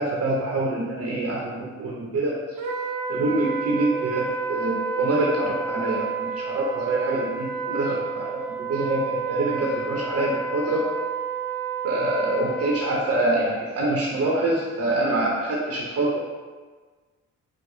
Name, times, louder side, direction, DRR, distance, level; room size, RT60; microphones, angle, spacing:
voice 1, 0.0-2.6 3.1-10.9 11.8-16.2, right 2 dB, 50° right, -3 dB, 0.8 m, -25 dB
Wind instrument woodwind instrument, 2.6-13.0, right 5 dB, 85° right, 0.7 m, -30 dB
4.8 x 2.2 x 3.8 m, 1.4 s
cardioid pair, 90°, 30 cm